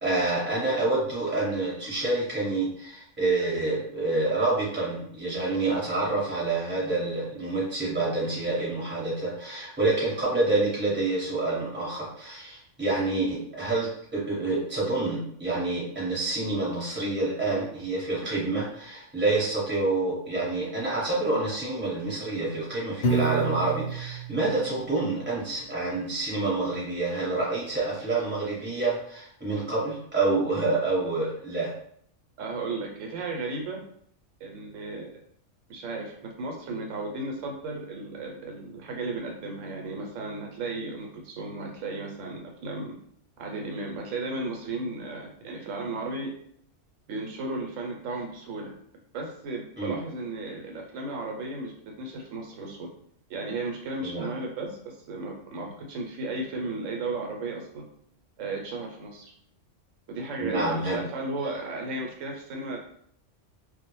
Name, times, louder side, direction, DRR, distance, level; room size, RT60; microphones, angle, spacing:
voice 1, 0.0-31.7 49.8-50.0 54.0-54.3 60.4-61.0, right 2 dB, 10° right, -7 dB, 0.9 m, -27 dB
Piano, 23.0-25.2, right 3 dB, 60° left, 0.8 m, -29 dB
voice 2, 32.4-33.8 34.4-35.1 35.7-42.9 43.4-46.3 47.1-48.7 49.1-51.7 52.0-52.9 53.3-57.9 58.4-59.3 60.1-62.8, right 2 dB, 80° right, 0 dB, 0.9 m, -34 dB
2.2 x 2.1 x 3.0 m, 0.67 s
omnidirectional pair, 1.3 m